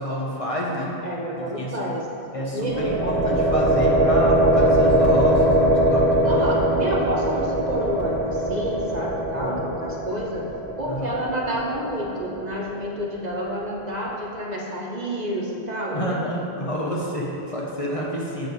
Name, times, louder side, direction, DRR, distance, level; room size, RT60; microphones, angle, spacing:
voice 1, 0.0-0.9 1.3-1.9 2.3-6.4 9.3-9.6 10.9-11.2 15.9-18.5, equal, 35° left, -4 dB, 1.0 m, -29 dB
voice 2, 1.0-2.1 2.5-2.8 6.2-10.4 10.8-16.2, equal, 45° right, -3 dB, 0.8 m, -29 dB
sound 1, 2.6-12.5, right 1 dB, 75° right, 1.9 m, -21 dB
7.6 x 6.8 x 4.0 m, 2.8 s
omnidirectional pair, 1.1 m